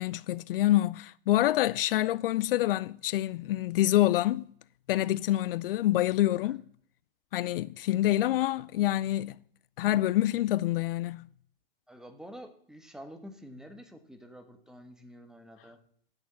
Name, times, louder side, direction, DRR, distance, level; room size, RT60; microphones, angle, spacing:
voice 1, 0.0-4.5 4.9-6.6 7.3-9.4 9.8-11.3, left 14 dB, 70° left, 0.4 m, -26 dB
voice 2, 11.9-15.8, equal, ahead, 1.6 m, -48 dB
15.5 x 6.6 x 7.2 m
hypercardioid pair, 115°, 29 cm